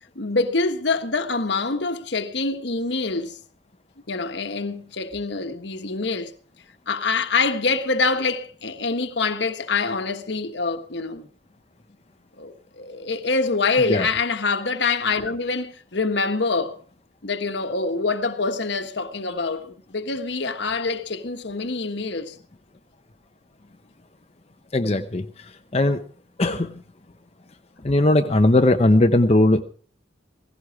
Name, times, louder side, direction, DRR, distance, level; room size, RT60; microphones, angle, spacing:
voice 1, 0.1-3.4 4.1-6.3 6.9-11.3 12.4-16.8 17.2-22.4, left 4 dB, 60° left, 1.3 m, -25 dB
voice 2, 24.7-26.0 26.4-26.8 27.8-29.6, left 1 dB, 30° left, 0.7 m, -19 dB
17.0 x 16.5 x 4.7 m
head